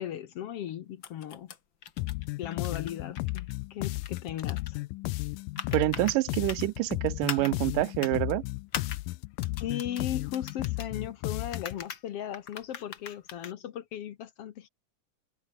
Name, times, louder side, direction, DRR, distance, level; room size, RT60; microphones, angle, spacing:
voice 1, 0.0-1.5 2.4-4.8 9.6-14.7, left 10 dB, 65° left, 1.6 m, -37 dB
sound 1, 1.0-1.6 1.8-2.3 2.5-3.5 3.8-4.7 5.6-6.2 6.5-6.6 7.2-7.5 8.0-8.2 8.7-9.0 9.4-10.0 10.3-10.9 11.5-12.0 12.3-13.5, left 7 dB, 45° left, 1.9 m, -40 dB
sound 2, 2.0-11.8, left 21 dB, 85° left, 2.3 m, -34 dB
voice 2, 5.7-8.4, right 19 dB, 85° right, 2.2 m, -27 dB
omnidirectional pair, 3.8 m